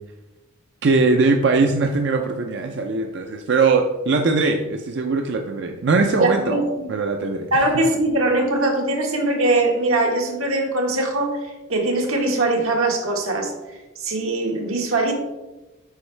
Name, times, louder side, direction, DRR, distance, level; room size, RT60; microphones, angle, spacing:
voice 1, 0.8-6.5 6.9-7.7, right 3 dB, 55° right, 4 dB, 0.4 m, -20 dB
voice 2, 6.2-6.9 7.5-13.5 14.0-15.1, right 2 dB, 85° right, 1 dB, 1.4 m, -21 dB
8.2 x 5.3 x 3.3 m, 1.1 s
head